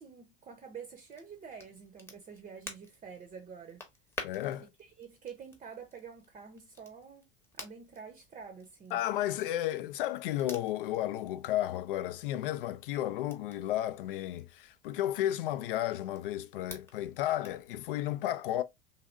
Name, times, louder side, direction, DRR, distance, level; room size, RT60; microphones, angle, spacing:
voice 1, 0.0-3.8 4.8-7.3 7.5-9.0, right 6 dB, 25° right, 0.7 m, -48 dB
Crackle, 1.0-17.7, left 2 dB, 10° left, 0.8 m, -52 dB
voice 2, 4.2-4.7 8.9-18.6, left 13 dB, 65° left, 0.5 m, -33 dB
3.2 x 2.6 x 2.5 m
figure-of-eight pair, 80°, 30 cm